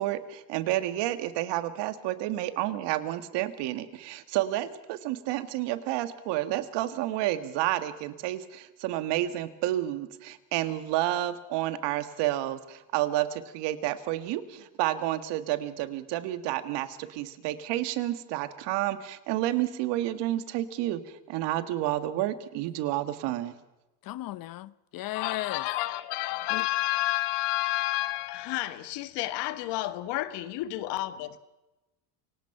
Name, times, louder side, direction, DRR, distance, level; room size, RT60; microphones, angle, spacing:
voice 1, 0.0-23.5, right 14 dB, 70° right, 1.8 m, -30 dB
voice 2, 24.0-25.7 26.5-26.7, left 16 dB, 50° left, 0.9 m, -36 dB
voice 3, 25.1-31.4, left 17 dB, 70° left, 1.6 m, -30 dB
28.0 x 18.0 x 5.9 m
supercardioid pair, 85°, 43 cm